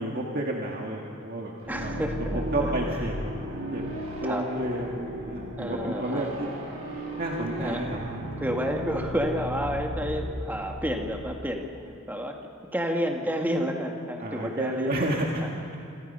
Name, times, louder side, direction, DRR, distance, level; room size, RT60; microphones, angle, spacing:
voice 1, 0.0-1.5 1.8-1.9 2.3-3.3 3.7-3.8 4.2-6.5 7.2-8.3 14.2-15.4, right 1 dB, 45° right, -1 dB, 2.0 m, -31 dB
sound 1, 1.6-11.3, right 1 dB, 75° right, 6.9 m, -35 dB
voice 2, 1.7-2.7 4.2-4.4 5.6-6.5 7.6-7.8 8.4-11.7 12.1-12.4 12.7-14.9, equal, 10° right, 2 dB, 2.0 m, -30 dB
27.5 x 27.0 x 5.6 m, 2.5 s
head